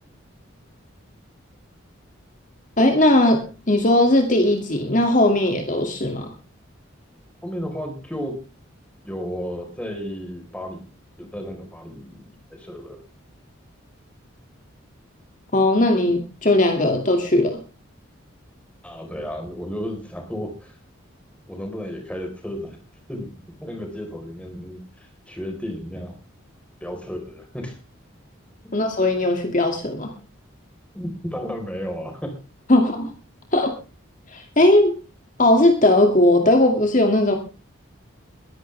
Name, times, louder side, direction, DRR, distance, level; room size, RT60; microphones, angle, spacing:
voice 1, 2.8-6.3 15.5-17.6 28.7-30.1 32.7-33.1 33.5-33.7 34.3-35.0 35.4-37.3, left 1 dB, 40° left, 4 dB, 2.3 m, -18 dB
voice 2, 7.4-8.4 9.0-10.8 11.2-13.0 18.8-20.8 21.5-22.8 23.1-23.3 23.6-26.1 26.8-27.8 30.9-32.3, equal, 5° left, 3 dB, 4.2 m, -33 dB
22.0 x 11.5 x 3.4 m, 0.33 s
head